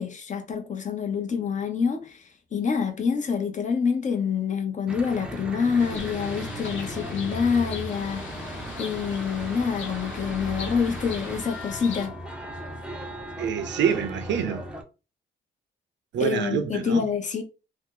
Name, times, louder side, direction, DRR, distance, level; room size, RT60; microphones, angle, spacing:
voice 1, 0.0-8.4 8.8-12.2 16.2-17.4, left 6 dB, 40° left, 0.7 m, -27 dB
Church bell / Traffic noise roadway noise, 4.9-14.8, equal, 5° right, 0.6 m, -37 dB
Bird, 5.8-12.1, left 4 dB, 75° left, 0.9 m, -40 dB
voice 2, 13.4-14.6 16.1-17.1, right 8 dB, 65° right, 0.5 m, -26 dB
2.8 x 2.0 x 3.6 m
cardioid pair, 90°, 20 cm